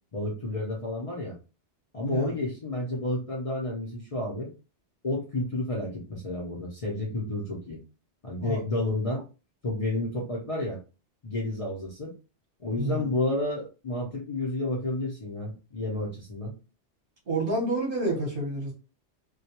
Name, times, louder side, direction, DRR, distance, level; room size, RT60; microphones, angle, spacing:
voice 1, 0.1-1.3 1.9-4.5 5.0-7.8 8.2-9.2 9.6-10.8 11.2-12.1 12.6-16.5, left 2 dB, 40° left, -3 dB, 0.5 m, -31 dB
voice 2, 2.0-2.4 8.4-8.6 12.8-13.1 17.3-18.7, right 1 dB, 50° right, -1 dB, 1.0 m, -29 dB
2.3 x 2.2 x 2.8 m, 0.31 s
omnidirectional pair, 1.2 m